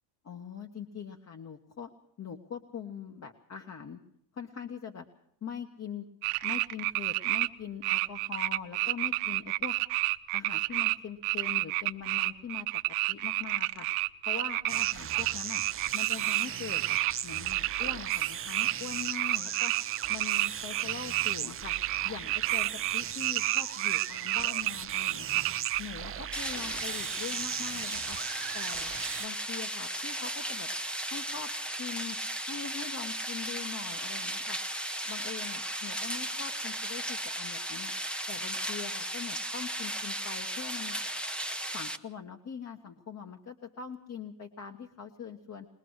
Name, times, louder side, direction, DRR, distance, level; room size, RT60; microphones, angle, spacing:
voice 1, 0.2-1.9 2.2-4.0 4.3-5.1 5.4-6.1 6.4-9.7 10.3-12.7 13.1-13.9 14.3-15.6 15.9-17.0 17.2-19.7 20.1-21.7 22.0-25.4 25.8-28.2 28.5-28.9 29.2-30.7 31.1-31.5 31.8-32.2 32.5-34.6 35.0-37.9 38.3-41.0 41.7-45.7, left 7 dB, 30° left, 5 dB, 1.4 m, -42 dB
sound 1, 6.2-7.5 7.8-11.0 11.2-21.3 21.6-25.8, right 20 dB, 85° right, 1.0 m, -30 dB
sound 2, 14.7-29.3, right 9 dB, 25° right, 0.7 m, -38 dB
sound 3, 26.3-42.0, right 1 dB, ahead, 0.9 m, -35 dB
22.0 x 20.0 x 6.4 m, 0.73 s
cardioid pair, 130°, 49 cm